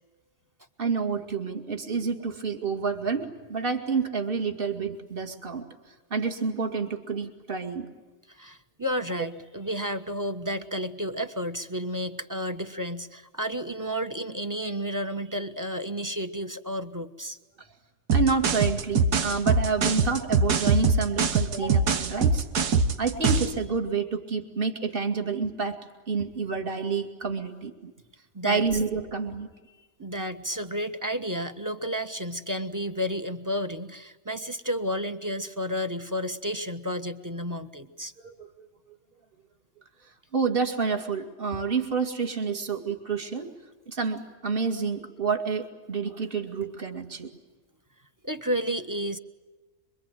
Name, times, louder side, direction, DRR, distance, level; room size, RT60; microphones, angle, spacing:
voice 1, 0.8-5.7 6.1-7.9 18.1-22.4 23.0-25.8 26.1-27.9 28.4-29.5 38.2-38.7 40.3-43.5 43.9-47.3, right 5 dB, 35° right, 5 dB, 2.5 m, -29 dB
voice 2, 8.3-17.4 28.3-28.6 30.0-38.1 48.2-49.2, equal, 15° right, 8 dB, 1.1 m, -31 dB
sound 1, 18.1-23.6, right 4 dB, 85° right, 1.8 m, -23 dB
26.0 x 24.5 x 9.2 m, 1.2 s
omnidirectional pair, 1.7 m